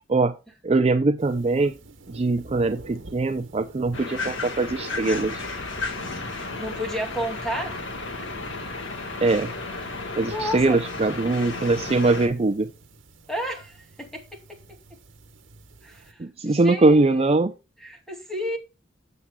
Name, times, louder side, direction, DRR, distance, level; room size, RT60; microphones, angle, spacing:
voice 1, 0.6-1.7 2.1-5.5 9.2-9.5 10.2-12.7 16.2-17.5, right 3 dB, 30° right, 0.5 m, -22 dB
sound 1, 1.2-16.1, right 2 dB, 70° right, 1.3 m, -47 dB
sound 2, 3.9-12.3, left 3 dB, 70° left, 1.7 m, -33 dB
voice 2, 6.6-7.8 10.2-10.8 13.3-14.8 15.8-17.6 17.8-18.6, equal, ahead, 2.5 m, -32 dB
12.5 x 7.5 x 2.3 m
head